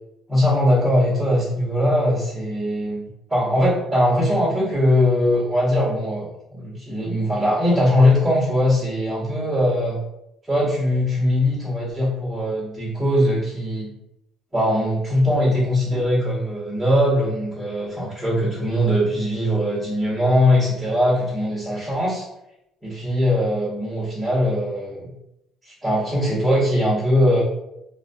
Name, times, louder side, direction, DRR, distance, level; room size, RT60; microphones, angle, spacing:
voice 1, 0.3-10.0 10.5-13.9 14.5-22.2 22.8-25.1 25.6-27.4, left 1 dB, 5° right, -13 dB, 0.9 m, -21 dB
2.3 x 2.2 x 2.5 m, 0.85 s
cardioid pair, 145°, 0 cm